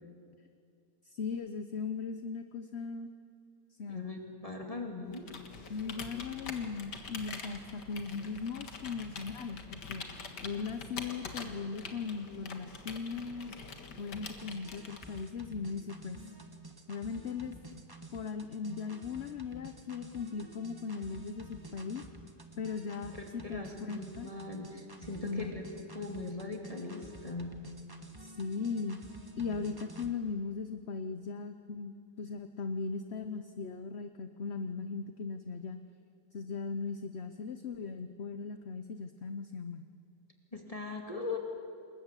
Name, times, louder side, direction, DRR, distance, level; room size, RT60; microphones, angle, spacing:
voice 1, 1.0-3.1 3.8-4.1 5.7-10.1 10.4-13.6 14.0-16.2 16.9-17.8 18.1-22.0 22.6-24.3 25.2-25.5 28.2-29.0 29.4-35.8 36.3-39.8, left 5 dB, 50° left, 8 dB, 0.9 m, -38 dB
voice 2, 3.9-5.3 23.1-27.6 40.5-41.4, left 3 dB, 20° left, 1 dB, 2.4 m, -40 dB
Computer keyboard, 5.1-15.4, left 4 dB, 80° left, 2.3 m, -45 dB
sound 1, 14.1-30.1, right 2 dB, 15° right, 1.4 m, -51 dB
28.5 x 20.5 x 8.2 m, 2.4 s
omnidirectional pair, 1.8 m